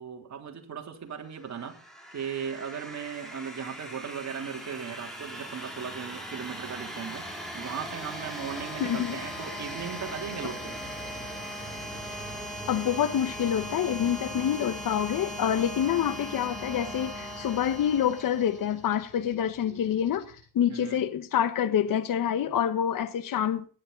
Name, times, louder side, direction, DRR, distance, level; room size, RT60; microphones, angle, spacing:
voice 1, 0.0-1.8 2.1-7.3 7.5-10.7 19.6-19.8 20.7-21.0, right 7 dB, 45° right, 3.4 m, -37 dB
sound 1, 1.4-19.0, equal, ahead, 5.5 m, -39 dB
sound 2, 8.4-20.4, left 4 dB, 75° left, 7.3 m, -55 dB
voice 2, 8.8-9.2 12.7-23.6, left 9 dB, 55° left, 1.3 m, -27 dB
17.0 x 11.5 x 4.0 m
cardioid pair, 100°, 38 cm